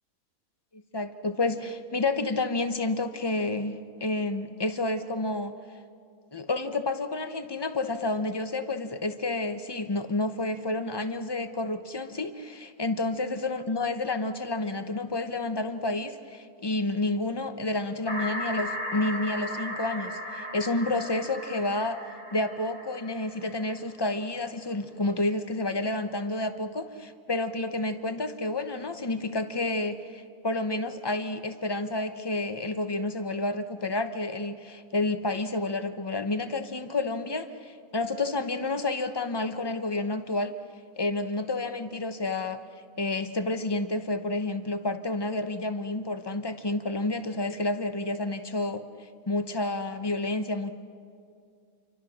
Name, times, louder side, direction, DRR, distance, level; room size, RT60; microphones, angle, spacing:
voice 1, 0.9-5.5 6.3-22.0 22.3-40.5 41.0-42.6 43.0-48.8 49.3-50.7, left 2 dB, 25° left, 9 dB, 0.6 m, -30 dB
sound 1, 18.1-23.8, equal, 60° left, 2.9 m, -36 dB
28.5 x 24.5 x 6.2 m, 2.4 s
omnidirectional pair, 1.7 m